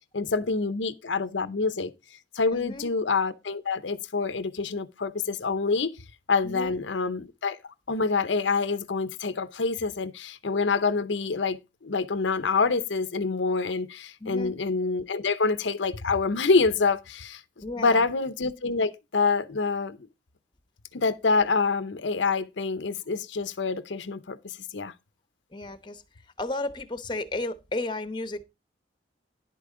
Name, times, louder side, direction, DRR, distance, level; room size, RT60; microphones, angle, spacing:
voice 1, 0.1-1.9 2.3-5.9 6.3-7.6 7.9-17.4 17.8-20.0 20.9-24.9, left 4 dB, 80° left, 0.8 m, -26 dB
voice 2, 2.5-2.9 6.4-6.8 14.2-14.5 17.6-18.1 25.5-26.0 26.4-28.4, left 2 dB, 25° left, 0.9 m, -33 dB
11.0 x 8.4 x 3.8 m
head